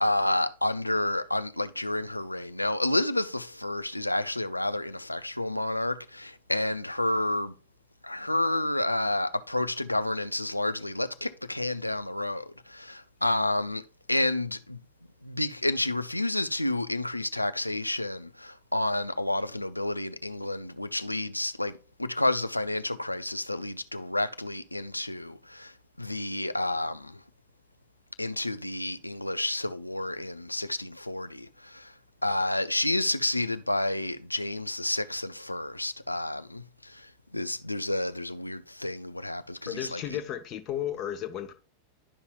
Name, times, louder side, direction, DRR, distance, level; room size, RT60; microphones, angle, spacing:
voice 1, 0.0-7.5 8.0-13.8 14.1-14.8 15.2-27.2 28.2-31.9 32.2-40.2, left 1 dB, 85° left, 0.5 m, -30 dB
voice 2, 39.7-41.5, left 10 dB, 30° left, 1.0 m, -34 dB
11.5 x 5.5 x 2.4 m
figure-of-eight pair, 90°, 0 cm